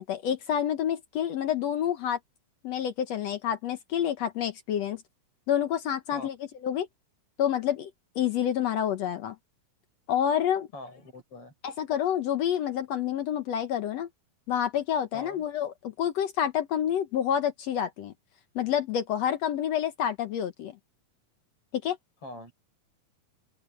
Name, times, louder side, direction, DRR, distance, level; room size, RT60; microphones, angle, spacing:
voice 1, 0.0-2.2 2.6-5.0 5.5-6.3 6.6-6.9 7.4-7.9 8.1-9.3 10.1-10.7 11.6-14.1 14.5-18.1 18.5-20.7 21.7-22.0, left 9 dB, 65° left, 1.7 m, -28 dB
voice 2, 10.7-11.5 15.1-15.4 22.2-22.5, left 2 dB, 40° left, 7.9 m, -43 dB
open air
omnidirectional pair, 4.1 m